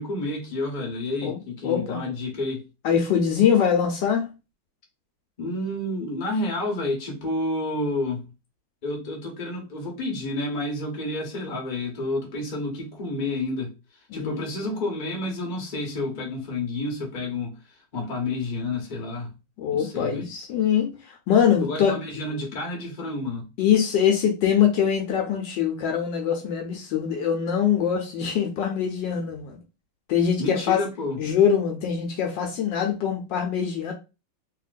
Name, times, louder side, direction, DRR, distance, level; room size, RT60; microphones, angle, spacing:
voice 1, 0.0-2.6 5.4-8.3 8.8-13.7 14.1-17.6 17.9-19.3 19.7-20.3 21.6-23.5 30.4-31.2, left 2 dB, 35° left, 0.8 m, -30 dB
voice 2, 1.2-2.0 2.8-4.3 14.1-14.4 19.6-22.0 23.6-29.6 30.1-30.8 31.2-33.9, left 8 dB, 70° left, 1.2 m, -23 dB
3.0 x 2.9 x 2.4 m
omnidirectional pair, 2.2 m